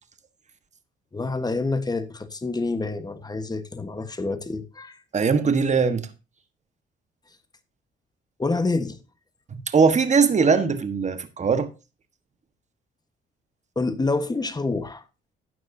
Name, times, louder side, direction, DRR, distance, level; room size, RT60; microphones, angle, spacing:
voice 1, 1.1-5.0 8.4-9.0 13.7-15.0, left 3 dB, 20° left, 1.3 m, -27 dB
voice 2, 5.1-6.1 9.7-11.7, right 5 dB, 35° right, 1.4 m, -20 dB
12.5 x 9.3 x 2.8 m
cardioid pair, 90°, 20 cm